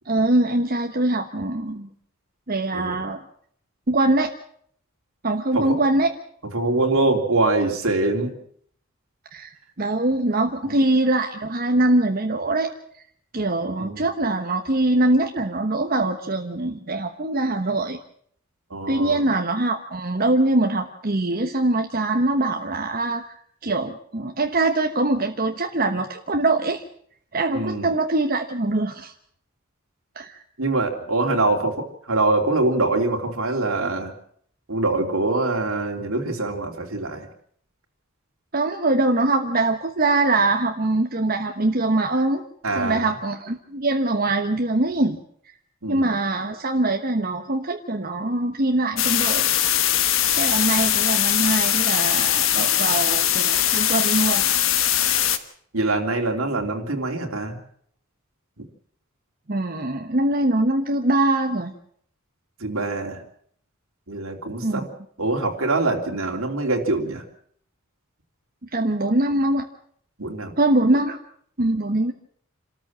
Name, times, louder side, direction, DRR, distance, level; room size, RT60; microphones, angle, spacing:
voice 1, 0.0-1.9 2.5-3.2 3.9-4.3 5.2-6.1 9.3-12.7 13.3-18.0 18.9-26.8 27.3-29.1 30.1-30.4 38.5-42.4 42.7-45.2 45.9-49.5 50.0-54.5 55.0-55.1 59.5-61.7 64.6-64.9 68.7-69.6 70.6-71.2 71.6-72.1, right 2 dB, 45° right, 4 dB, 1.2 m, -23 dB
voice 2, 2.7-3.1 5.5-5.8 6.5-8.3 13.8-14.0 18.7-19.3 27.5-27.9 30.6-34.1 34.7-37.3 42.6-43.1 45.8-46.1 55.7-57.6 62.6-63.2 64.1-64.8 65.2-67.2 70.2-70.6, right 2 dB, 85° right, 1 dB, 3.3 m, -24 dB
sound 1, 49.0-55.4, left 11 dB, 75° left, 1.4 m, -21 dB
27.5 x 13.5 x 7.5 m, 0.65 s
head